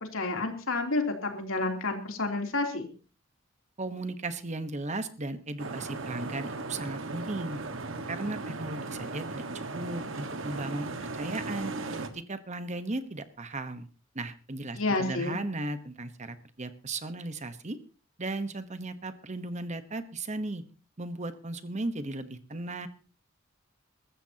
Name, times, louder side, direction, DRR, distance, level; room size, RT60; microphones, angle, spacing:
voice 1, 0.1-2.9 14.7-15.4, left 2 dB, 85° left, 2 dB, 3.2 m, -30 dB
voice 2, 3.8-7.6 8.1-10.9 11.1-11.7 12.1-13.9 14.1-17.8 18.2-20.6 21.0-22.9, right 2 dB, 35° right, 10 dB, 1.1 m, -36 dB
sound 1, 5.6-12.1, right 3 dB, 70° right, 1.6 m, -37 dB
22.5 x 14.0 x 2.9 m, 0.36 s
head